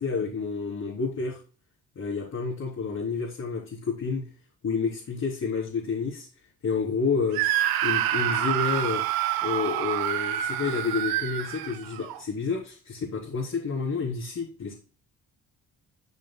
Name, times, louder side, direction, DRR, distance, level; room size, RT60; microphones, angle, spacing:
voice 1, 0.0-1.4 2.0-4.3 4.6-6.3 6.6-7.4 7.8-9.0 9.4-14.7, left 5 dB, 50° left, -5 dB, 3.9 m, -29 dB
Screaming, 7.3-12.2, right 11 dB, 85° right, 1.1 m, -27 dB
12.5 x 6.4 x 2.3 m, 0.36 s
supercardioid pair, 80°, 35 cm